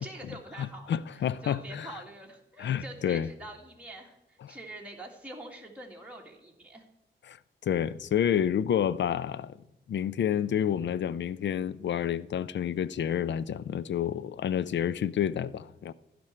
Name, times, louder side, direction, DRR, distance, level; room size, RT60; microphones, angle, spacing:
voice 1, 0.0-6.8, right 1 dB, 5° right, 2.0 m, -45 dB
voice 2, 0.6-1.9 2.6-3.3 4.4-4.5 7.3-7.4 7.6-9.5 9.9-15.9, left 9 dB, 70° left, 0.5 m, -29 dB
15.5 x 5.3 x 4.4 m
cardioid pair, 60°, 19 cm